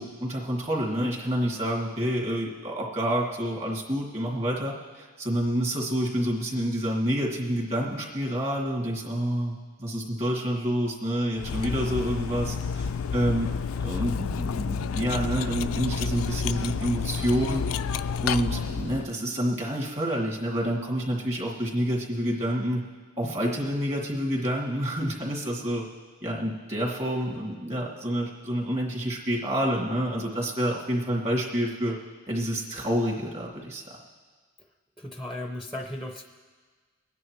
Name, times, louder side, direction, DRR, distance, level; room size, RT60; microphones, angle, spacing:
voice 1, 0.0-13.5 13.8-17.6 18.2-22.8 23.2-25.8 26.2-32.0 32.3-34.0, equal, 30° right, -2 dB, 2.4 m, -28 dB
Cutlery silverware, 11.4-19.1, left 6 dB, 80° left, 0.4 m, -30 dB
voice 2, 35.0-36.2, left 1 dB, ahead, 3 dB, 0.6 m, -35 dB
24.5 x 9.7 x 3.1 m, 1.5 s
head